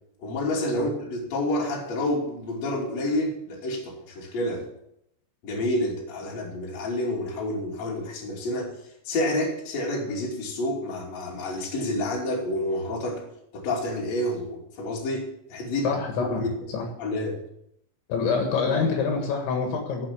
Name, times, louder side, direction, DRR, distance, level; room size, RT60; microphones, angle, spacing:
voice 1, 0.2-4.7 5.4-8.8 9.0-13.2 13.5-16.7 17.0-17.4, left 1 dB, 40° left, -2 dB, 3.5 m, -29 dB
voice 2, 15.8-16.4 16.7-16.8 18.1-20.1, left 5 dB, 70° left, 2 dB, 3.9 m, -26 dB
15.5 x 5.9 x 7.6 m, 0.76 s
omnidirectional pair, 5.7 m